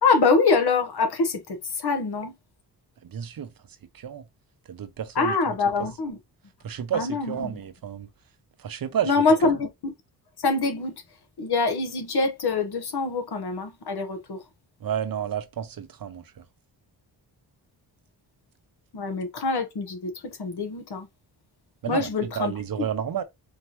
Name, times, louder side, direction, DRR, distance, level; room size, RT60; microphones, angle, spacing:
voice 1, 0.0-2.3 5.1-6.2 6.9-7.6 9.0-9.9 10.4-11.0 11.4-14.4 18.9-21.1 21.9-22.5 22.8-22.9, left 4 dB, 60° left, 1.2 m, -25 dB
voice 2, 3.0-3.5 3.9-4.2 4.7-5.3 6.6-8.1 8.6-9.1 14.8-16.4 21.8-22.1 22.4-23.2, right 9 dB, 55° right, 0.7 m, -31 dB
4.5 x 2.9 x 3.0 m
cardioid pair, 65°, 43 cm